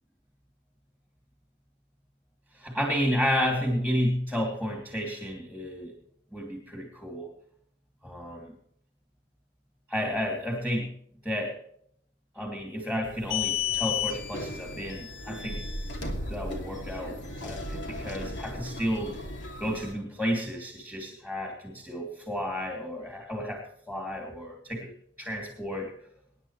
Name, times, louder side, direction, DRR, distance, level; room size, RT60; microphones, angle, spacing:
voice 1, 2.5-5.9 6.3-7.3 8.0-8.5 9.9-10.9 11.2-11.6 12.3-15.6 16.3-19.1 19.6-24.9 25.2-25.9, equal, 5° left, 0 dB, 2.7 m, -31 dB
sound 1, 13.0-19.9, left 5 dB, 80° left, 2.7 m, -34 dB
24.5 x 10.0 x 3.2 m, 0.65 s
head